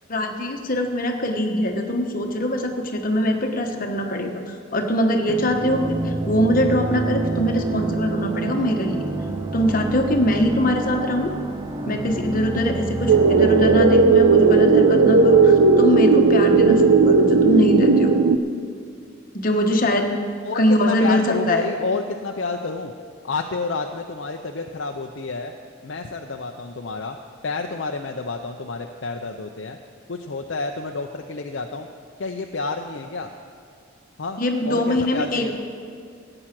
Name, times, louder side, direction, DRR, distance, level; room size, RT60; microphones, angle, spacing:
voice 1, 0.1-9.0 9.5-11.3 11.9-18.1 19.3-20.1 20.5-21.7 34.4-35.6, equal, 40° left, 4 dB, 1.2 m, -22 dB
sound 1, 5.3-18.3, right 2 dB, 20° right, 0.4 m, -28 dB
sound 2, 13.1-18.4, right 4 dB, 90° right, 0.7 m, -15 dB
voice 2, 20.4-22.9 23.2-25.5 25.8-27.2 27.4-29.8 30.1-31.9 32.2-33.3 34.2-35.6, left 3 dB, 60° left, 3 dB, 0.6 m, -29 dB
14.5 x 8.9 x 6.0 m, 2.3 s
head